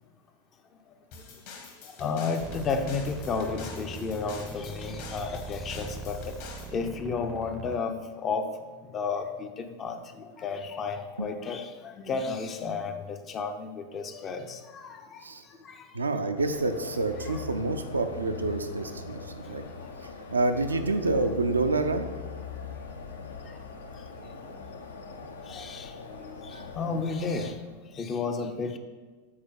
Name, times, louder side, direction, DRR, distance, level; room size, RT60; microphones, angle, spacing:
sound 1, 1.1-6.7, left 4 dB, 50° left, 1.2 m, -46 dB
voice 1, 2.0-6.2 6.7-8.0 8.2-8.4 8.9-9.9 10.4-11.6 12.0-15.0 17.3-17.4 25.5-25.9 26.2-26.3 26.8-27.5 28.0-28.8, left 4 dB, 25° left, 6 dB, 0.5 m, -32 dB
sound 2, 2.4-7.8, right 3 dB, 15° right, 0.6 m, -41 dB
voice 2, 15.9-19.6 20.3-22.1 26.5-26.6, right 2 dB, 75° right, 7 dB, 0.5 m, -28 dB
sound 3, 16.4-27.5, left 5 dB, 70° left, 0.6 m, -41 dB
7.4 x 4.2 x 4.7 m, 1.4 s
figure-of-eight pair, 90°, 0 cm